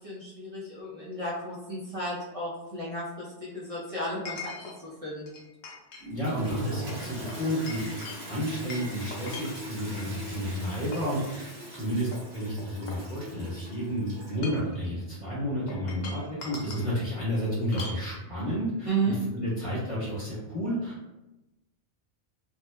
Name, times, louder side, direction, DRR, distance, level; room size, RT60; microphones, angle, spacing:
voice 1, 0.0-4.5 4.8-5.4 18.9-19.2, right 2 dB, 40° right, -8 dB, 0.6 m, -33 dB
Chink clink, 0.8-0.9 4.3-4.8 5.3-6.1 6.4-6.6 7.3-10.1 10.6-11.2 11.7-11.8 12.1-13.5 14.2-14.8 15.7-16.9 17.7-18.0, left 3 dB, 85° left, 0.9 m, -42 dB
Toilet flush, 6.0-14.6, equal, 75° right, 1.1 m, -41 dB
voice 2, 6.1-21.0, equal, 30° left, -8 dB, 1.1 m, -31 dB
3.0 x 2.1 x 2.2 m, 0.97 s
omnidirectional pair, 1.1 m